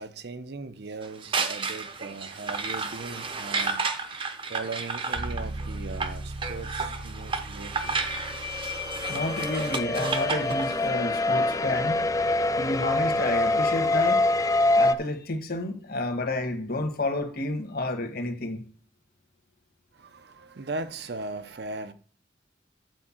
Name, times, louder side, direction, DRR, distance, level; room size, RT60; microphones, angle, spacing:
voice 1, 0.0-3.9 4.5-8.5 12.2-12.8 19.9-21.9, right 3 dB, 65° right, 0.7 m, -39 dB
sound 1, 1.0-10.8, right 4 dB, 30° right, 0.7 m, -32 dB
sound 2, 5.1-12.9, right 1 dB, 80° right, 1.8 m, -40 dB
sound 3, 7.8-14.9, left 2 dB, 20° left, 0.4 m, -25 dB
voice 2, 9.1-12.0 12.6-14.2 14.8-18.6, left 2 dB, 55° left, 1.5 m, -30 dB
9.1 x 4.6 x 7.3 m
head